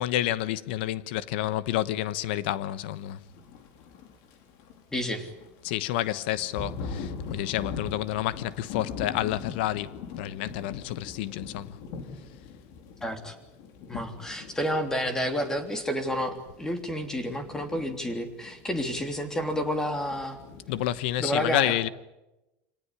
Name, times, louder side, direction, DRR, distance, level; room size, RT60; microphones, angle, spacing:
voice 1, 0.0-3.2 5.6-11.8 20.7-21.9, left 13 dB, 90° left, 1.1 m, -29 dB
Thunder / Rain, 3.2-21.3, left 5 dB, 65° left, 4.1 m, -42 dB
voice 2, 4.9-5.3 13.0-13.3 13.9-20.4 21.2-21.8, equal, 10° left, 3.3 m, -30 dB
26.0 x 18.5 x 10.0 m
cardioid pair, 150°, 6 cm